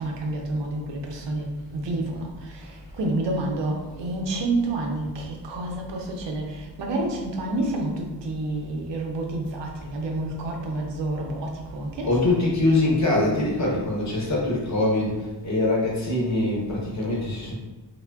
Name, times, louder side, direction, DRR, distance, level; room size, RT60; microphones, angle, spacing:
voice 1, 0.0-1.5 1.7-12.5, right 2 dB, 85° right, 0 dB, 0.6 m, -29 dB
voice 2, 12.0-17.5, left 2 dB, 40° left, -4 dB, 0.8 m, -23 dB
3.2 x 2.1 x 2.2 m, 1.2 s
wide cardioid pair, 155°, 42 cm